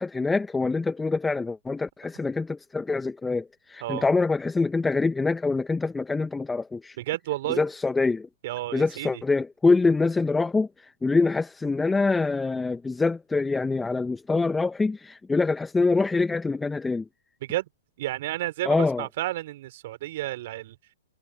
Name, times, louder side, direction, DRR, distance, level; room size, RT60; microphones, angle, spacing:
voice 1, 0.0-7.0 7.6-8.3 8.7-17.0 18.6-19.0, left 3 dB, 10° left, 1.6 m, -25 dB
voice 2, 6.9-7.6 8.4-9.2 17.4-17.7 18.0-20.8, right 16 dB, 50° right, 3.5 m, -31 dB
hypercardioid pair, 120°, 0 cm